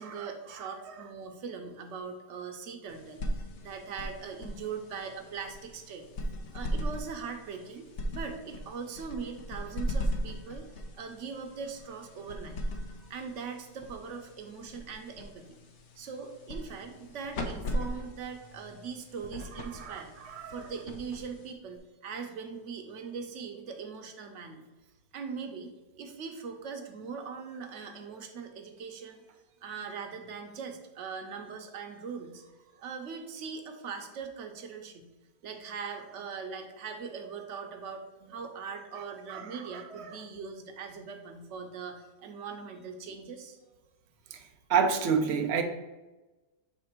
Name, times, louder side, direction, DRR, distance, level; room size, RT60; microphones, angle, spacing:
voice 1, 0.0-6.1 6.5-12.6 13.1-15.6 16.0-20.1 20.5-24.6 25.1-25.7 26.0-29.2 29.6-32.4 32.8-35.1 35.4-43.6, right 5 dB, 55° right, 4 dB, 0.9 m, -41 dB
sound 1, 2.9-21.8, equal, 60° left, 0.7 m, -38 dB
voice 2, 19.8-20.5 39.3-40.1 44.3-44.4 44.7-45.6, right 6 dB, 80° right, 4 dB, 0.6 m, -29 dB
6.7 x 3.4 x 4.4 m, 1.1 s
omnidirectional pair, 1.8 m